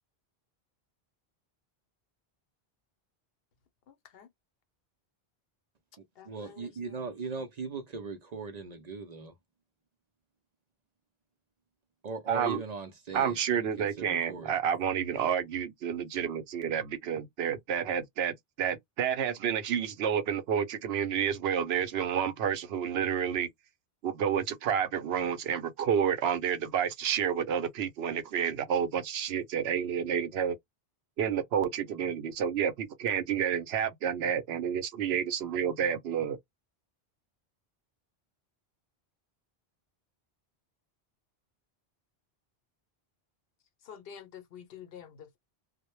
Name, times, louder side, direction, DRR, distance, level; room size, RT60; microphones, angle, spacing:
voice 1, 3.9-4.3 6.2-7.0 43.8-45.4, left 8 dB, 70° left, 0.8 m, -49 dB
voice 2, 6.0-9.4 12.0-13.4 13.8-14.5, right 4 dB, 50° right, 0.5 m, -39 dB
voice 3, 12.3-12.6 13.1-23.5 24.0-30.6 31.2-36.4, right 8 dB, 80° right, 0.8 m, -30 dB
2.1 x 2.1 x 3.0 m
omnidirectional pair, 1.0 m